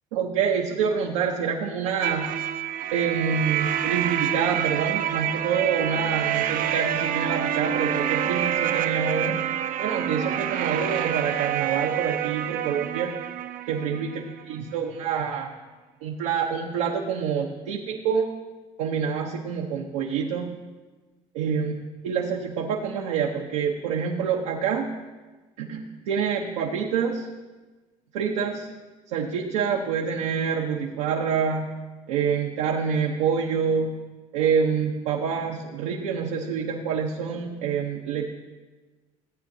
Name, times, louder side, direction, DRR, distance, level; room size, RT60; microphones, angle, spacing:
voice 1, 0.1-2.3 2.9-9.4 9.8-13.1 13.7-14.2 14.5-15.5 16.0-18.3 18.8-20.5 21.3-21.7 22.0-24.9 25.6-27.3 28.1-28.7 29.1-31.7 32.1-33.9 34.3-38.3, right 6 dB, 85° right, -1 dB, 0.9 m, -26 dB
sound 1, 2.0-14.7, right 10 dB, 55° right, 0.6 m, -27 dB
15.5 x 8.5 x 2.8 m, 1.3 s
hypercardioid pair, 70°, 17 cm